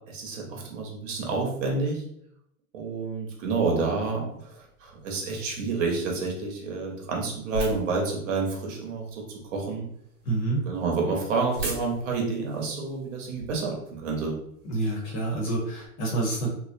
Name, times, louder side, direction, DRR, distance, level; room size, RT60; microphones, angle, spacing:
voice 1, 0.1-2.0 2.7-4.3 4.8-9.2 9.5-9.8 10.7-14.3, right 4 dB, 60° right, 0 dB, 0.9 m, -29 dB
sound 1, 3.3-15.9, right 1 dB, 85° right, 1.0 m, -43 dB
voice 2, 10.3-10.6 14.6-16.5, right 2 dB, 30° left, -2 dB, 0.8 m, -27 dB
2.7 x 2.0 x 2.5 m, 0.72 s
hypercardioid pair, 110°, 43 cm